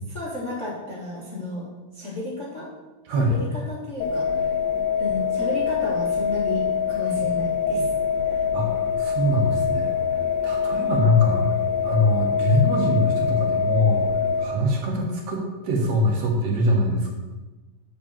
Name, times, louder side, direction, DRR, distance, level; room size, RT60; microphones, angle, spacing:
voice 1, 0.1-1.7 1.9-2.7 3.2-4.5 5.0-7.9 8.2-8.4 10.9-11.5, left 1 dB, 30° left, -6 dB, 1.4 m, -33 dB
sound 1, 4.0-14.4, left 6 dB, 70° left, 1.0 m, -24 dB
voice 2, 8.5-9.9 10.4-11.4 11.8-14.1 14.4-17.1, left 1 dB, 60° right, 0 dB, 2.5 m, -22 dB
8.4 x 5.1 x 7.4 m, 1.2 s
omnidirectional pair, 3.6 m